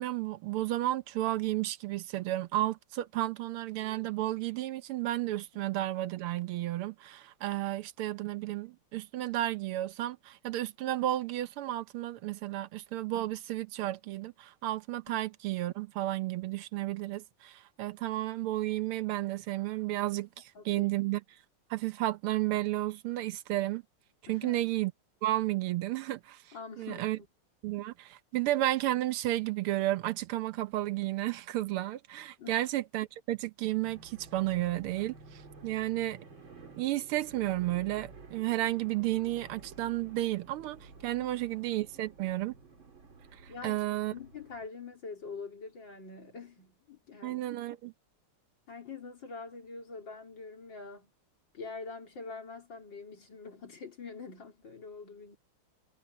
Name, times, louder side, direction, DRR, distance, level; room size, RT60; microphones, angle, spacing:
voice 1, 0.0-21.2 21.7-23.8 24.3-24.9 25.2-26.4 26.8-27.2 27.6-35.1 35.6-36.2 36.7-42.5 43.4-44.1 47.2-47.9, right 15 dB, 85° right, 1.7 m, -32 dB
voice 2, 20.6-20.9 24.3-24.6 26.5-27.3 32.4-32.6 43.5-43.8 44.1-47.4 48.7-51.1 51.5-55.4, left 4 dB, 60° left, 4.1 m, -45 dB
sound 1, 33.8-44.7, right 4 dB, 65° right, 4.2 m, -52 dB
omnidirectional pair, 2.3 m